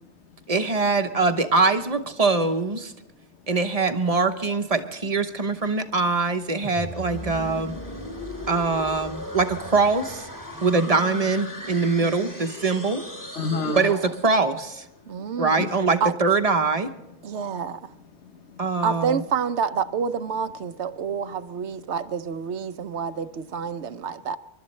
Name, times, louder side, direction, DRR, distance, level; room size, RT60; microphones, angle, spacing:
voice 1, 0.5-2.9 3.5-7.7 8.5-10.3 10.6-13.0 13.7-14.9 15.4-16.9 18.6-19.2, right 4 dB, 35° right, 1.0 m, -23 dB
sound 1, 6.6-14.5, left 1 dB, 15° left, 1.9 m, -37 dB
voice 2, 12.0-12.4 13.7-14.0 15.1-15.6 16.0-16.1 17.2-17.8 18.8-24.4, right 6 dB, 80° right, 1.0 m, -28 dB
voice 3, 13.3-13.9 15.0-15.2 15.5-15.9 17.3-17.4 17.9-18.7, left 4 dB, 90° left, 1.4 m, -32 dB
28.0 x 12.5 x 3.2 m
omnidirectional pair, 1.1 m